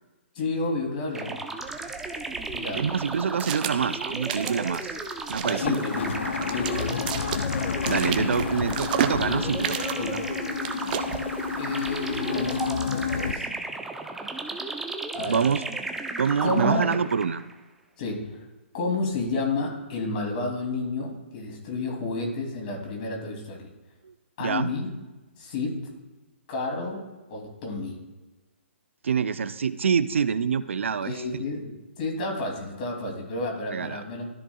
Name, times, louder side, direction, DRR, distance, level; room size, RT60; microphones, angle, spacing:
voice 1, 0.3-1.3 2.5-2.8 5.4-6.1 6.5-7.0 10.0-10.2 11.5-13.5 15.1-15.5 16.4-16.9 18.0-18.5 18.7-23.7 24.4-24.9 25.4-25.9 26.5-27.0 27.3-28.0 31.0-34.3, left 3 dB, 40° left, 2 dB, 2.7 m, -30 dB
sound 1, 1.1-17.5, right 3 dB, 5° right, 0.6 m, -34 dB
sound 2, 1.6-12.7, right 9 dB, 40° right, 0.8 m, -35 dB
voice 2, 2.7-5.0 5.3-5.8 7.9-10.2 15.3-15.6 16.2-17.4 24.0-24.1 24.4-24.7 29.0-31.1 33.7-34.0, right 6 dB, 70° right, 14 dB, 0.5 m, -26 dB
sound 3, 5.6-13.3, left 6 dB, 65° left, 0.4 m, -30 dB
13.5 x 6.0 x 2.3 m, 1.2 s
hypercardioid pair, 135°, 7 cm